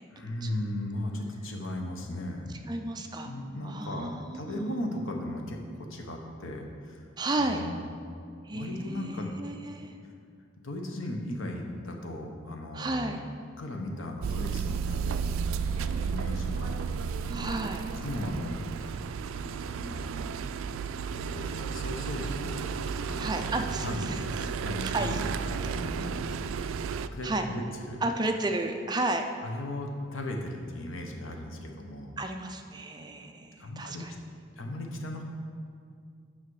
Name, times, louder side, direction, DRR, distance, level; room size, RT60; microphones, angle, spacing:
voice 1, 0.1-2.5 3.2-7.1 7.4-7.8 8.5-9.4 10.6-13.2 13.6-16.9 17.2-17.5 18.0-19.0 19.3-20.3 21.1-22.8 23.1-23.6 23.8-26.8 27.1-28.0 29.4-32.2 33.6-34.0 34.6-35.2, left 1 dB, 90° left, 2 dB, 1.0 m, -37 dB
voice 2, 2.7-3.3 3.6-4.8 7.2-7.6 8.4-9.9 12.7-13.2 17.3-17.8 23.2-24.2 24.8-25.2 27.2-27.4 28.0-29.2 32.2-34.1, right 2 dB, 20° right, 5 dB, 0.4 m, -32 dB
sound 1, 14.2-27.1, right 6 dB, 90° right, 0.3 m, -33 dB
8.5 x 6.0 x 4.8 m, 2.2 s
head